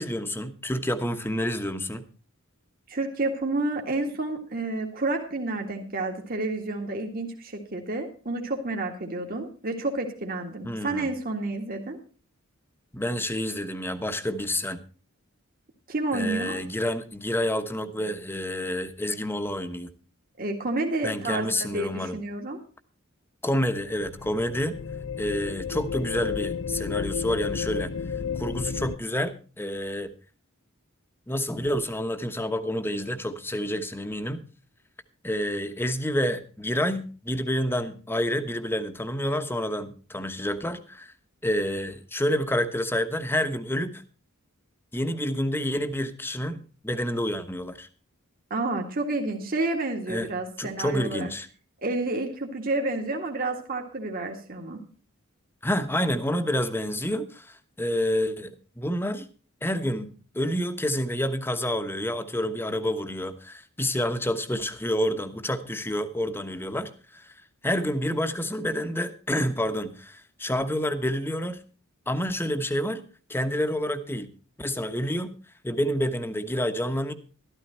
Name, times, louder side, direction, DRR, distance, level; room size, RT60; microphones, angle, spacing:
voice 1, 0.0-2.0 10.6-11.1 12.9-14.8 16.1-19.9 21.0-22.2 23.4-24.8 25.2-27.9 28.3-30.1 31.3-34.4 35.2-41.1 41.4-44.0 44.9-47.9 50.1-50.3 50.6-51.5 55.6-59.2 59.6-60.1 60.3-67.3 67.6-71.6 72.1-73.0 73.3-74.3 74.6-75.3 75.6-77.1, equal, 10° left, 9 dB, 1.1 m, -28 dB
voice 2, 2.9-12.0 15.9-16.6 20.4-22.6 48.5-51.3 51.8-54.8, right 2 dB, 45° right, 2 dB, 2.0 m, -30 dB
sound 1, 23.9-29.0, left 6 dB, 60° left, 0.5 m, -32 dB
13.0 x 13.0 x 4.3 m, 0.37 s
head